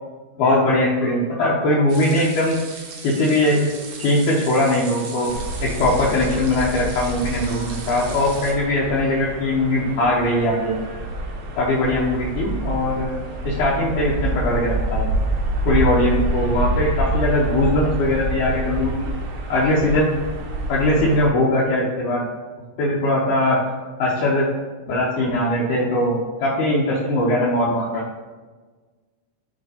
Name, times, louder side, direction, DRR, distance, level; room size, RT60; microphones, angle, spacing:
voice 1, 0.4-2.6 3.0-3.7 4.0-5.3 5.6-10.7 11.6-13.1 13.4-15.1 15.7-19.1 19.5-20.1 20.7-22.2 22.8-23.6 24.0-24.5 24.9-28.0, left 1 dB, 75° left, -5 dB, 2.4 m, -20 dB
sound 1, 1.9-8.5, right 4 dB, 65° right, 2.1 m, -38 dB
sound 2, 5.3-21.3, right 1 dB, 80° right, 1.2 m, -27 dB
7.7 x 4.0 x 4.2 m, 1.4 s
omnidirectional pair, 3.6 m